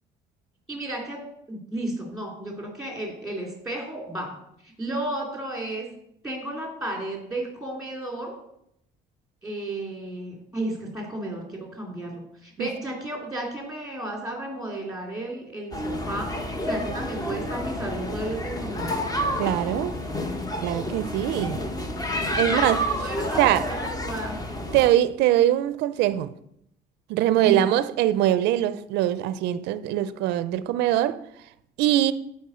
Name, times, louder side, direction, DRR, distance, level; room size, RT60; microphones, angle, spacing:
voice 1, 0.7-1.2 1.5-4.3 4.6-5.9 6.2-8.3 9.4-19.0 22.5-24.4 27.4-27.7, right 1 dB, 5° right, 2.4 m, -33 dB
sound 1, 15.7-24.9, left 1 dB, 20° left, 1.0 m, -29 dB
voice 2, 19.4-19.9 20.6-21.6 22.4-22.8 23.4-23.7 24.7-26.3 27.1-31.2 31.8-32.1, right 13 dB, 85° right, 0.4 m, -22 dB
8.3 x 4.5 x 4.9 m
cardioid pair, 110°, 17 cm